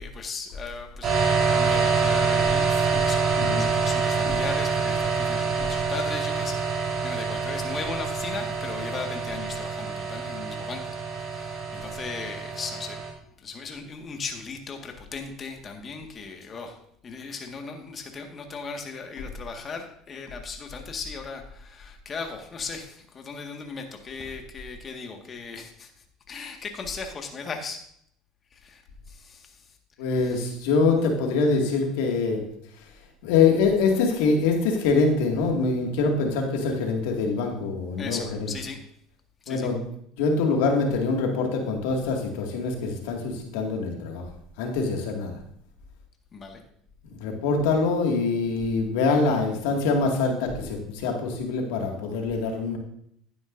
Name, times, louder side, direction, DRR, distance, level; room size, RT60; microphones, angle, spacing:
voice 1, 0.0-13.0 13.4-16.8 17.0-25.9 26.3-27.8 28.5-28.8 29.1-29.8 30.2-30.5 38.0-38.8 39.4-39.7 46.3-46.6, left 4 dB, 35° left, 3 dB, 1.7 m, -37 dB
sound 1, 1.0-13.1, right 5 dB, 45° right, 4.0 m, -26 dB
voice 2, 30.0-32.4 33.2-38.5 39.5-39.8 40.2-44.2 44.6-45.4 47.1-52.8, left 4 dB, 75° left, 2 dB, 2.1 m, -24 dB
12.0 x 9.7 x 2.6 m, 0.68 s
hypercardioid pair, 80°, 0 cm